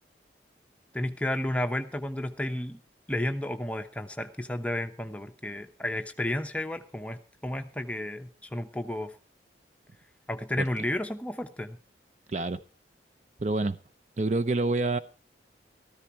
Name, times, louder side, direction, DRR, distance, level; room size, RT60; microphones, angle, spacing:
voice 1, 0.9-2.8 3.1-9.1 10.3-11.8, left 1 dB, 5° left, 0.8 m, -32 dB
voice 2, 12.3-12.6 13.4-13.8 14.2-15.0, right 2 dB, 40° right, 0.6 m, -27 dB
14.0 x 14.0 x 4.3 m
head